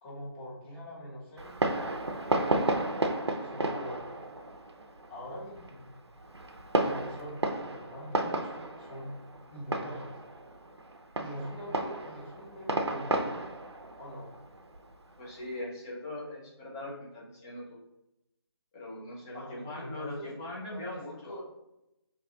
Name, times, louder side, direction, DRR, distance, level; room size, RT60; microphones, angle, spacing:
voice 1, 0.0-1.5 3.4-4.2 5.1-5.9 6.8-9.1 9.5-10.2 11.2-13.4 14.0-14.3 19.3-20.3 20.7-21.4, equal, 25° left, -7 dB, 1.2 m, -43 dB
Fireworks, 1.4-15.5, right 2 dB, 90° right, 0.5 m, -33 dB
voice 2, 15.2-17.8 18.7-21.4, left 1 dB, 10° left, -5 dB, 0.3 m, -40 dB
2.6 x 2.3 x 3.8 m, 0.90 s
figure-of-eight pair, 150°, 14 cm